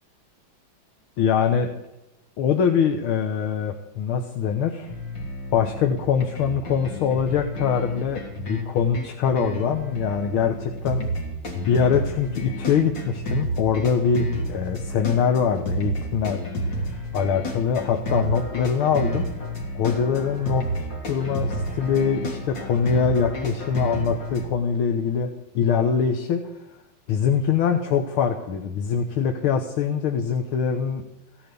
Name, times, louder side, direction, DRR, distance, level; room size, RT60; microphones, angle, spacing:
voice 1, 1.2-1.7 2.4-4.9 5.5-11.1 11.6-16.4 16.9-19.3 19.8-20.7 21.0-26.4 27.1-31.0, left 7 dB, 85° left, 5 dB, 1.9 m, -23 dB
sound 1, 4.9-24.4, equal, 60° left, 3.7 m, -30 dB
16.5 x 11.0 x 6.9 m, 0.93 s
omnidirectional pair, 2.3 m